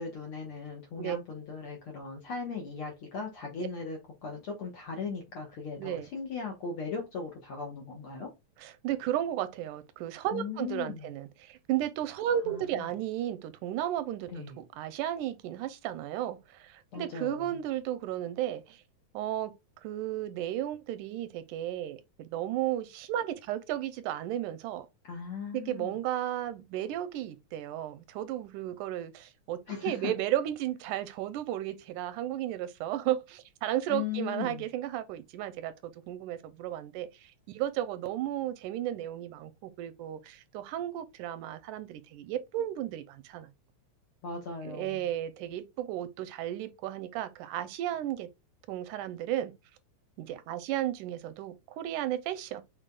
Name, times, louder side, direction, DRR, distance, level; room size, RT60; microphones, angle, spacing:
voice 1, 0.0-8.3 10.3-11.1 12.5-12.9 14.3-14.6 16.9-17.6 25.0-26.0 29.7-30.1 33.9-34.7 44.2-45.1, left 5 dB, 60° left, 1.5 m, -38 dB
voice 2, 8.6-18.8 19.1-19.5 19.8-24.9 25.5-43.5 44.6-48.3 48.7-49.5 50.2-52.6, right 12 dB, 85° right, 2.1 m, -34 dB
6.7 x 3.4 x 2.3 m
omnidirectional pair, 3.6 m